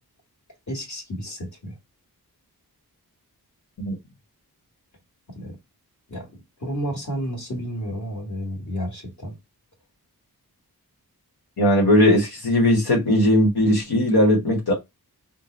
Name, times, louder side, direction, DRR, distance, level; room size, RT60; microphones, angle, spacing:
voice 1, 0.7-1.7 5.3-5.5 6.1-6.3 6.6-9.3, equal, 50° left, 1.6 m, -31 dB
voice 2, 11.6-14.7, left 1 dB, 80° left, 1.2 m, -18 dB
3.7 x 2.1 x 3.9 m
wide cardioid pair, 80°, 38 cm